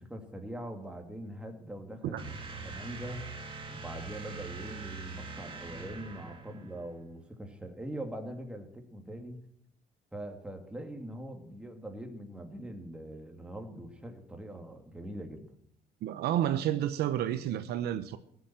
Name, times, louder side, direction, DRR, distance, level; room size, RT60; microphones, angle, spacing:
voice 1, 0.0-3.3 3.7-9.4 10.1-15.4, right 1 dB, 5° right, 2.4 m, -42 dB
sound 1, 2.2-6.9, right 4 dB, 30° right, 2.2 m, -43 dB
voice 2, 16.0-18.2, right 11 dB, 75° right, 0.8 m, -30 dB
17.0 x 7.2 x 7.6 m
cardioid pair, 110°, 17 cm